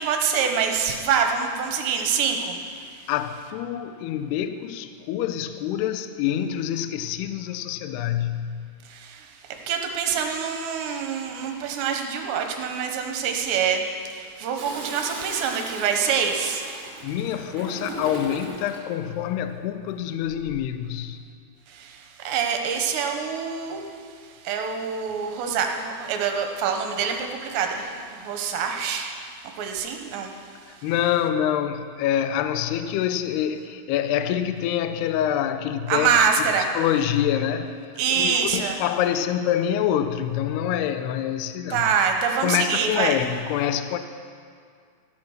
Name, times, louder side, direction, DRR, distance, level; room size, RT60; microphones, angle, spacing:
voice 1, 0.0-2.6 8.9-9.2 9.7-13.8 14.1-16.6 21.7-22.0 22.2-23.8 24.4-29.1 29.6-30.3 35.9-36.7 38.0-38.8 41.7-43.2, right 6 dB, 75° right, 3.0 m, -25 dB
voice 2, 3.1-8.6 17.0-21.2 30.8-36.5 36.7-37.8 38.1-41.9 42.4-44.0, left 10 dB, 85° left, 2.3 m, -26 dB
Toilet flush, 14.6-18.9 20.2-20.7, right 2 dB, 35° right, 2.1 m, -38 dB
15.0 x 12.0 x 6.5 m
omnidirectional pair, 5.6 m